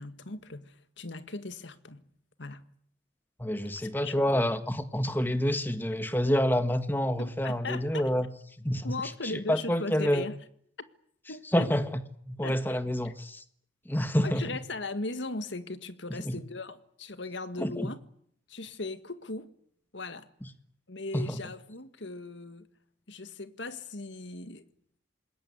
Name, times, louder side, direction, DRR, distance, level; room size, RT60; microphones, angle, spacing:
voice 1, 0.0-2.0 2.4-2.6 3.8-4.3 7.2-8.1 8.8-10.4 11.3-11.7 12.4-12.8 13.0-13.1 14.2-18.0 18.5-19.5 19.9-20.3 20.9-22.7 23.1-24.7, left 2 dB, 75° left, 1.9 m, -38 dB
voice 2, 3.4-8.3 8.6-8.8 9.2-10.2 11.5-12.0 12.3-13.4 13.9-14.4 16.2-16.3 17.6-17.9 21.1-21.4, equal, 10° left, 1.6 m, -28 dB
26.5 x 21.0 x 9.7 m
head